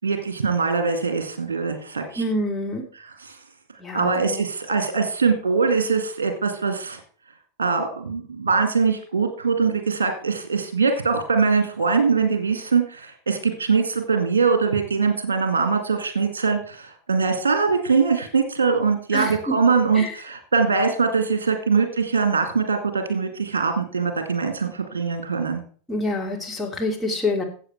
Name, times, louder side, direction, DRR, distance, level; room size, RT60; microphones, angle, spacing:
voice 1, 0.0-2.2 3.2-3.3 3.9-7.0 7.6-25.6, right 5 dB, 65° right, 6 dB, 2.1 m, -22 dB
voice 2, 2.2-2.9 3.8-4.4 19.1-19.6 19.9-20.1 25.9-27.4, left 1 dB, 5° left, -1 dB, 2.7 m, -26 dB
14.0 x 7.9 x 4.6 m, 0.43 s
figure-of-eight pair, 90°, 0 cm